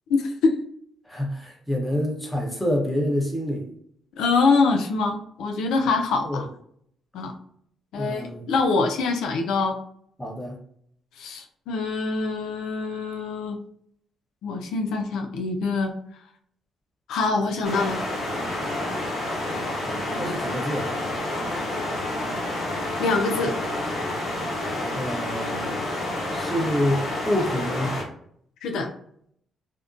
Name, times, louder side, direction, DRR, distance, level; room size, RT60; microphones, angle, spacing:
voice 1, 0.1-0.6 4.2-6.5 7.1-7.3 7.9-9.8 11.2-13.6 14.4-15.9 17.1-18.0 23.0-23.6 28.6-28.9, left 4 dB, 85° left, 4 dB, 0.3 m, -24 dB
voice 2, 1.1-3.7 6.3-6.4 7.9-8.5 10.2-10.6 19.9-20.9 24.9-25.8 26.3-27.9, left 1 dB, 10° left, -1 dB, 0.8 m, -27 dB
sound 1, 17.6-28.0, left 1 dB, 65° left, 0.9 m, -29 dB
2.5 x 2.1 x 2.5 m, 0.65 s
cardioid pair, 90°, 0 cm